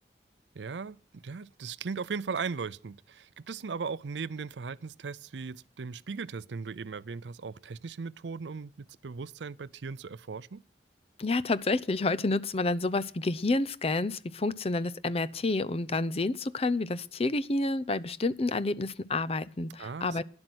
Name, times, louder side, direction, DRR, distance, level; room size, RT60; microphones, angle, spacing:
voice 1, 0.5-10.6 19.8-20.2, right 5 dB, 80° right, 0.5 m, -38 dB
voice 2, 11.2-20.2, left 2 dB, 35° left, 0.6 m, -29 dB
12.0 x 10.5 x 6.2 m
head